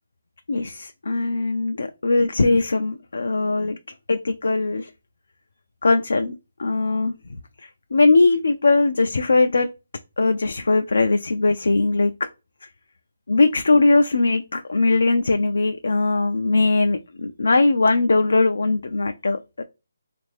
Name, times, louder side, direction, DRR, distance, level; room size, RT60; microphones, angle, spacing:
voice 1, 0.5-3.8 4.1-4.9 5.8-6.3 6.6-7.1 7.6-9.7 10.2-12.1 13.3-19.6, left 3 dB, 75° left, 0.4 m, -20 dB
3.4 x 2.5 x 3.2 m
figure-of-eight pair, 160°, 0 cm